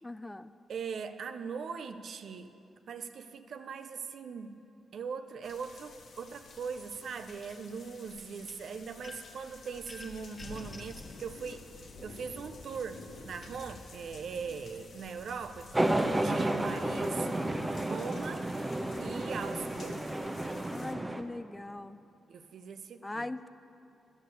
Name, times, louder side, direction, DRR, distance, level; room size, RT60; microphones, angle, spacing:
voice 1, 0.0-0.5 20.7-22.0 23.0-23.5, left 2 dB, 15° left, 13 dB, 0.3 m, -40 dB
voice 2, 0.7-2.5 2.9-4.6 4.9-11.7 12.0-15.9 16.2-20.1 22.3-23.3, right 6 dB, 70° right, 10 dB, 0.5 m, -41 dB
sound 1, 5.4-20.9, left 3 dB, 65° left, 1.1 m, -51 dB
sound 2, 9.0-9.4 9.9-11.1, left 3 dB, 40° left, 1.2 m, -49 dB
sound 3, 15.7-21.2, right 1 dB, 20° right, 0.7 m, -31 dB
10.5 x 6.6 x 6.8 m, 2.7 s
cardioid pair, 60°, 0 cm